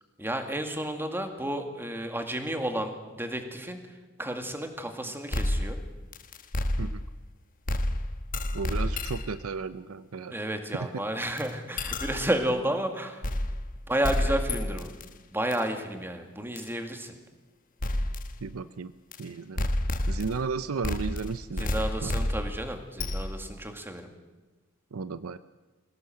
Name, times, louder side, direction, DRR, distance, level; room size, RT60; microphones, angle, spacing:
voice 1, 0.2-5.8 10.3-13.3 13.9-14.9 15.3-17.2 21.6-24.1, right 1 dB, 10° right, 5 dB, 2.1 m, -32 dB
sound 1, 5.3-7.3 7.7-9.4 11.4-11.5 11.8-12.4 13.2-13.8 14.0-15.1 15.5-15.6 16.6-16.7 17.8-18.3 19.1-19.2 19.6-20.5 20.8-23.5, left 1 dB, 40° left, 1.3 m, -30 dB
voice 2, 8.5-10.3 10.8-11.0 18.4-18.9 19.2-19.7 20.1-22.2 24.9-25.4, right 4 dB, 85° right, 14 dB, 0.6 m, -34 dB
22.5 x 17.0 x 7.7 m, 1.2 s
head